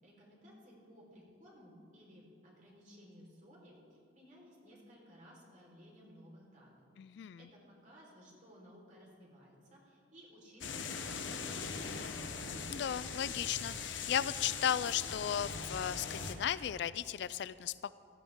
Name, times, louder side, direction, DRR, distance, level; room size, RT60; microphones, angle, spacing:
voice 1, 0.0-6.8 7.2-12.1, equal, 45° right, -3 dB, 4.0 m, -58 dB
voice 2, 7.0-7.4 12.7-17.9, left 9 dB, 65° left, 17 dB, 0.3 m, -35 dB
sound 1, 10.6-16.3, left 5 dB, 85° left, 1.0 m, -41 dB
17.0 x 12.5 x 3.6 m, 2.4 s
head